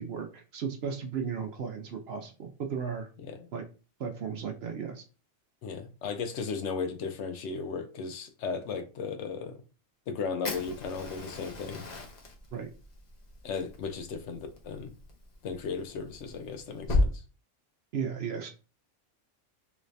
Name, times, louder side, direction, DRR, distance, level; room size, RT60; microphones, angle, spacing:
voice 1, 0.0-3.1 3.5-3.6 4.0-5.0 12.5-12.7 17.9-18.5, right 6 dB, 60° right, 0.8 m, -35 dB
voice 2, 5.6-9.6 10.1-11.9 13.4-14.9 15.4-17.2, left 5 dB, 70° left, 0.9 m, -36 dB
Fire, 10.4-17.1, left 2 dB, 40° left, 0.7 m, -35 dB
3.1 x 2.6 x 3.2 m
omnidirectional pair, 1.3 m